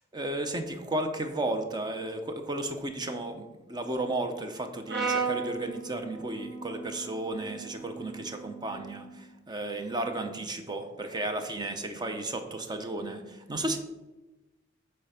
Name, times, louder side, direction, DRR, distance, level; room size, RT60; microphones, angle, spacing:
voice 1, 0.1-13.8, right 2 dB, 20° right, 6 dB, 0.7 m, -34 dB
Brass instrument, 4.9-9.1, right 4 dB, 60° right, 1.4 m, -36 dB
8.5 x 3.4 x 5.7 m, 1.1 s
head